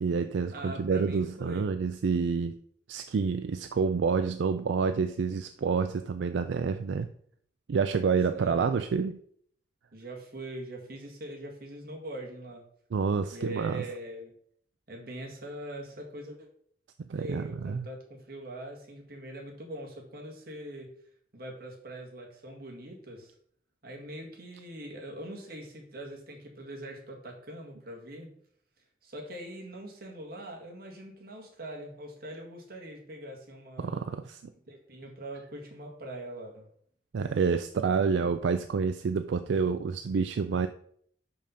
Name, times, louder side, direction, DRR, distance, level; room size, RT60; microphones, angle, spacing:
voice 1, 0.0-2.6 2.9-7.1 7.7-9.2 12.9-13.8 17.1-17.9 33.8-34.5 37.1-40.7, right 5 dB, 80° right, 9 dB, 0.4 m, -28 dB
voice 2, 0.5-1.7 8.4-8.6 9.9-12.7 13.3-14.3 14.9-16.5 17.1-20.9 21.3-23.3 23.8-28.4 29.0-34.0 34.7-36.7, right 1 dB, 55° right, 0 dB, 1.7 m, -42 dB
5.6 x 5.3 x 5.2 m, 0.63 s
head